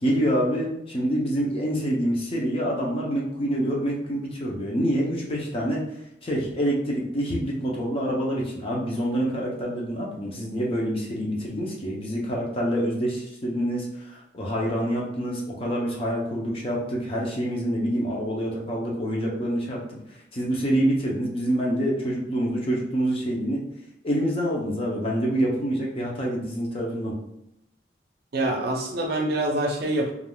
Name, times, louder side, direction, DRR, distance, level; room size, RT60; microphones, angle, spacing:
voice 1, 0.0-5.8 6.2-20.0 20.3-23.6 24.0-27.1, equal, 30° left, -3 dB, 0.6 m, -26 dB
voice 2, 28.3-30.1, right 1 dB, 60° right, 2 dB, 0.5 m, -25 dB
3.4 x 2.4 x 2.2 m, 0.82 s
head